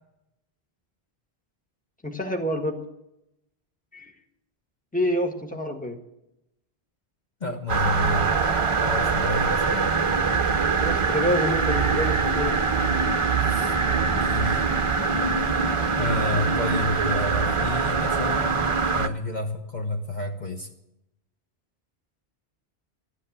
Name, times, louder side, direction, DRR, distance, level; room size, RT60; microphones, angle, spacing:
voice 1, 2.0-2.8 3.9-4.1 4.9-6.0 10.8-12.6 15.8-15.9, equal, 10° left, 3 dB, 1.6 m, -27 dB
voice 2, 7.4-8.4 8.8-9.8 13.4-13.8 14.0-14.7 15.9-20.7, left 2 dB, 45° left, 3 dB, 1.2 m, -30 dB
sound 1, 7.7-19.1, right 5 dB, 35° right, 0.7 m, -23 dB
13.5 x 10.0 x 8.5 m, 0.87 s
omnidirectional pair, 1.0 m